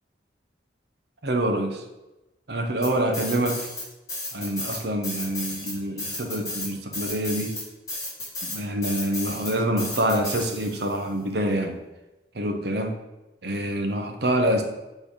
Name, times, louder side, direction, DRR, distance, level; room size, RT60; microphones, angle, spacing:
voice 1, 1.2-1.8 2.5-3.7 4.3-7.6 8.4-11.8 12.3-13.0 13.4-14.6, right 1 dB, 65° right, 5 dB, 0.9 m, -26 dB
sound 1, 2.8-10.9, left 2 dB, 20° left, 2.5 m, -33 dB
8.4 x 3.5 x 5.1 m, 1.0 s
head